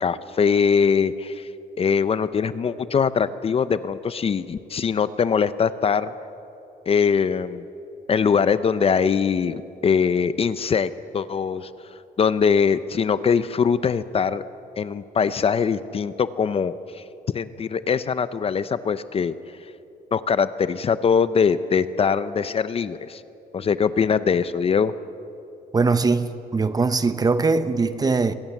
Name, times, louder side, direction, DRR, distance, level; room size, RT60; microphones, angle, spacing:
voice 1, 0.0-1.5 1.8-6.1 6.9-7.7 8.1-11.7 12.2-14.4 14.8-17.0 17.3-19.3 20.1-23.2 23.5-24.9, left 6 dB, 35° left, 0.7 m, -22 dB
voice 2, 25.7-28.3, right 4 dB, 25° right, 0.9 m, -21 dB
24.5 x 18.5 x 7.2 m
cardioid pair, 125°, 17 cm